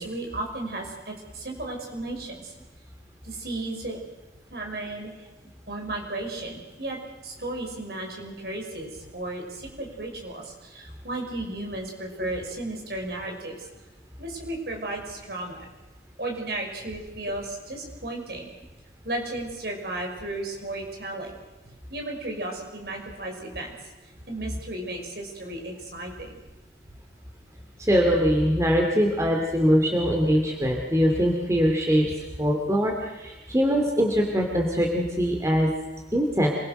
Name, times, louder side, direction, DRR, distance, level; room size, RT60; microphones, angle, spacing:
voice 1, 0.0-2.5 3.2-4.0 4.5-5.3 5.7-13.7 14.2-15.7 16.2-18.5 19.0-21.4 21.9-23.7 24.3-26.4, right 2 dB, 60° right, 1 dB, 5.8 m, -34 dB
voice 2, 27.8-32.1 32.4-35.7 36.1-36.5, equal, 15° right, 0 dB, 2.6 m, -22 dB
27.5 x 21.5 x 6.7 m, 1.1 s
head